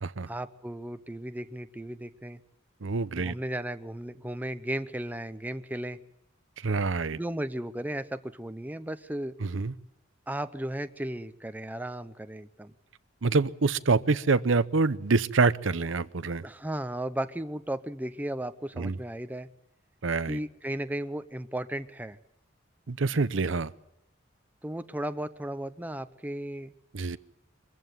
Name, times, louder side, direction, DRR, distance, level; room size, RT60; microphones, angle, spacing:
voice 1, 0.3-2.4 3.2-6.0 7.1-9.3 10.3-12.7 16.4-19.5 20.3-22.2 24.6-26.7, right 1 dB, 10° right, 10 dB, 0.7 m, -35 dB
voice 2, 2.8-3.3 6.6-7.2 9.4-9.7 13.2-16.4 18.8-19.0 20.0-20.4 22.9-23.7 26.9-27.2, right 4 dB, 75° right, 15 dB, 0.7 m, -26 dB
23.5 x 15.0 x 9.4 m, 0.87 s
head